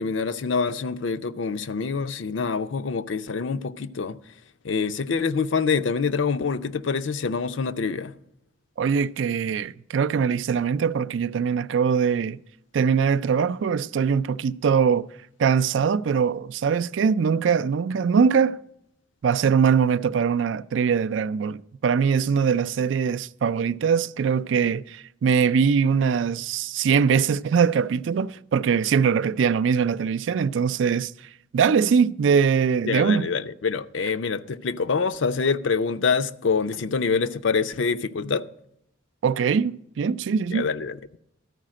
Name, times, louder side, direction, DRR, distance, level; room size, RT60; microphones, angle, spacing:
voice 1, 0.0-4.2 4.6-8.1 32.9-38.4 40.5-41.2, left 5 dB, 70° left, 0.5 m, -26 dB
voice 2, 8.8-12.4 12.7-15.1 15.4-18.6 19.2-31.1 31.5-33.3 39.2-40.7, right 6 dB, 70° right, 0.3 m, -22 dB
13.0 x 4.9 x 7.5 m
head